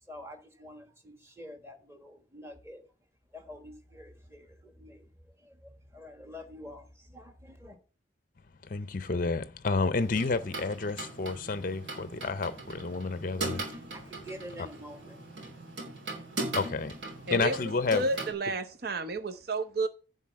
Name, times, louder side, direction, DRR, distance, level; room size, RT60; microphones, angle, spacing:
voice 1, 0.0-2.9 3.3-7.8 13.4-15.2 19.0-19.4 19.8-19.9, equal, 15° right, 1.4 m, -48 dB
voice 2, 8.7-13.7 16.5-17.0 17.3-18.0, left 3 dB, 45° left, 0.5 m, -30 dB
sound 1, 10.0-18.3, right 2 dB, 65° right, 3.1 m, -40 dB
voice 3, 17.3-17.6 17.9-19.9, right 2 dB, 50° right, 0.7 m, -31 dB
10.5 x 4.1 x 7.5 m
head